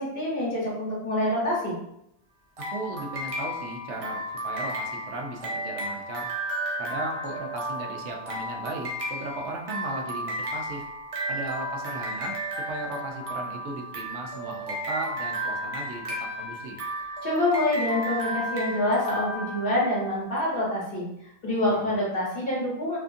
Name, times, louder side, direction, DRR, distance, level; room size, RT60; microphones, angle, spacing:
voice 1, 0.0-1.7 17.2-21.1 21.4-23.0, left 1 dB, 55° left, -5 dB, 1.1 m, -26 dB
sound 1, 2.6-20.2, equal, 40° right, 0.5 m, -33 dB
voice 2, 2.7-6.3 6.8-10.8 11.3-12.4 12.7-16.0 16.4-16.8 21.7-21.9, right 2 dB, 85° right, 2 dB, 0.9 m, -36 dB
2.8 x 2.4 x 2.5 m, 0.80 s
omnidirectional pair, 1.1 m